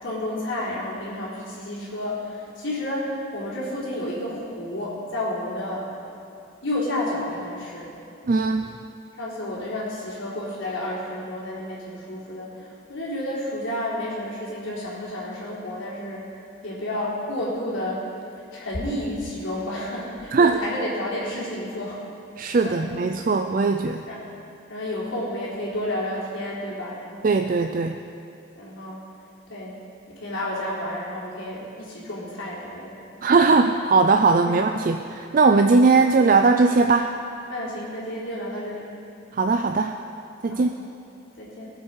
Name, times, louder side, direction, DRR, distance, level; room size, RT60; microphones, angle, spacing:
voice 1, 0.0-5.8 6.6-7.9 9.2-16.2 16.6-18.0 18.5-22.0 22.6-22.9 24.1-24.2 24.7-27.0 28.6-29.0 29.5-29.7 30.1-32.9 34.4-34.6 37.5-38.9 40.5-40.6 41.4-41.7, left 1 dB, 70° left, -7 dB, 3.6 m, -31 dB
voice 2, 8.3-8.7 20.3-20.6 22.4-24.0 27.2-28.0 33.2-37.1 39.4-40.0 40.4-40.7, right 4 dB, 40° right, 5 dB, 0.4 m, -19 dB
20.5 x 7.7 x 4.8 m, 2.8 s
head